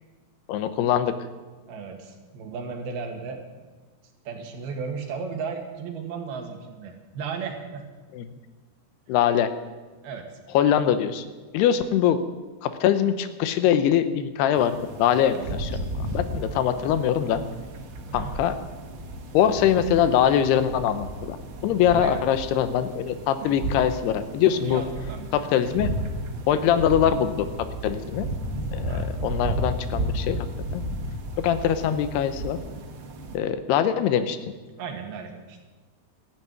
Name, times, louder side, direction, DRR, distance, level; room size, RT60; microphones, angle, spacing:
voice 1, 0.5-1.1 8.1-8.3 9.1-9.5 10.5-11.2 11.5-12.2 12.6-15.4 16.0-17.4 18.1-18.5 19.3-21.4 21.6-24.8 25.3-25.9 26.5-28.3 28.7-30.5 30.7-30.8 31.4-32.6 33.3-34.4, left 9 dB, 75° left, 11 dB, 2.8 m, -22 dB
voice 2, 1.7-3.4 4.2-7.8 10.0-10.3 15.3-15.5 18.1-18.4 21.9-22.3 24.5-25.6 26.5-26.7 28.8-29.1 34.8-35.6, right 5 dB, 65° right, 3 dB, 3.4 m, -35 dB
sound 1, 14.5-33.4, right 1 dB, 85° right, 1.2 m, -33 dB
14.0 x 11.0 x 9.1 m, 1.3 s
omnidirectional pair, 5.0 m